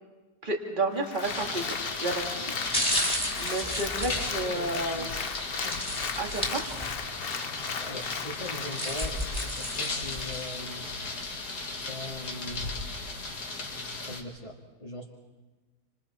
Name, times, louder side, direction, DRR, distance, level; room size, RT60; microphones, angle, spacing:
voice 1, 0.4-2.5 3.4-5.2 6.2-6.7, right 2 dB, 30° right, 1 dB, 2.5 m, -31 dB
Applause, 1.0-10.7 11.2-11.3, left 6 dB, 45° left, 0.8 m, -38 dB
sound 1, 1.2-14.2, left 3 dB, 70° left, 2.7 m, -36 dB
sound 2, 1.6-1.8 2.4-5.0 5.7-7.1 7.5-7.6 8.4-10.6 11.1-11.2, equal, 5° left, 3.1 m, -33 dB
voice 2, 4.4-5.1 5.6-5.8 7.8-11.0 11.5-12.7 14.0-15.0, left 1 dB, 25° left, -4 dB, 2.0 m, -41 dB
29.0 x 26.5 x 4.3 m, 1.2 s
omnidirectional pair, 1.7 m